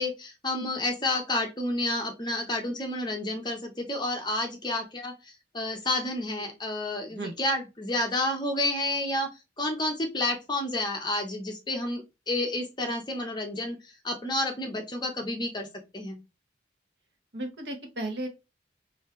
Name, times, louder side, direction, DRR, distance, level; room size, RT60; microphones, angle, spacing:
voice 1, 0.0-5.1 5.5-9.3 9.6-15.7 15.9-16.2, left 1 dB, 25° left, 0.8 m, -30 dB
voice 2, 17.3-18.3, right 1 dB, 70° right, 1.0 m, -34 dB
4.3 x 2.7 x 3.1 m
head